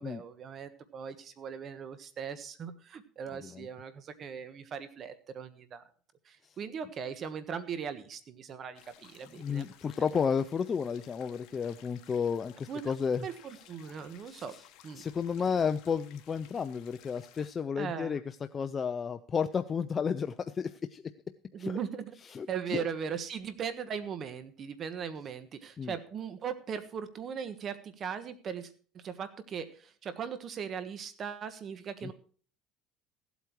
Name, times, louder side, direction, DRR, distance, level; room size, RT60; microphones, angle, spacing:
voice 1, 0.0-5.8 6.2-9.7 12.7-13.0 13.2-14.5 14.8-15.1 17.8-18.2 21.5-22.1 22.5-32.1, right 7 dB, 40° right, 12 dB, 1.4 m, -39 dB
sound 1, 8.7-17.5, left 12 dB, 65° left, 1.5 m, -58 dB
voice 2, 9.4-13.3 14.3-14.6 15.0-21.1 21.6-21.8 22.3-22.5 22.7-22.8 25.8-26.0 32.0-32.1, left 6 dB, 25° left, 10 dB, 0.5 m, -32 dB
15.5 x 8.3 x 4.6 m, 0.41 s
cardioid pair, 135°, 0 cm